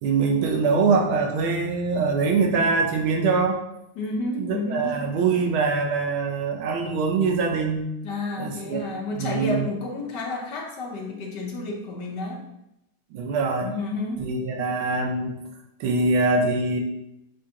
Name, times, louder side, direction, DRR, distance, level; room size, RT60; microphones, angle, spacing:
voice 1, 0.0-3.6 4.4-7.9 8.4-8.8 9.2-9.6 13.1-13.7 14.2-15.3 15.8-16.8, right 4 dB, 80° right, 2 dB, 1.5 m, -23 dB
voice 2, 3.9-5.0 8.0-12.4 13.6-14.3, left 3 dB, 65° left, -1 dB, 1.2 m, -31 dB
7.3 x 2.6 x 2.8 m, 0.85 s
omnidirectional pair, 2.3 m